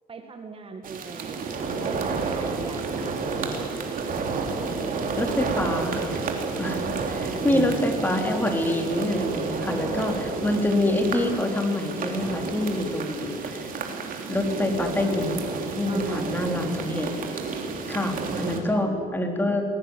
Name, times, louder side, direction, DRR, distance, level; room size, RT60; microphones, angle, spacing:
voice 1, 0.1-4.2 7.5-8.7 15.9-16.3 17.9-19.7, right 5 dB, 35° right, 6 dB, 1.8 m, -39 dB
sound 1, 0.8-18.6, right 4 dB, 55° right, 3.6 m, -30 dB
voice 2, 5.2-6.2 6.6-13.7 14.3-17.3 17.9-19.7, left 1 dB, 10° left, 3 dB, 3.7 m, -26 dB
21.0 x 17.5 x 9.0 m, 2.3 s
cardioid pair, 110°, 17 cm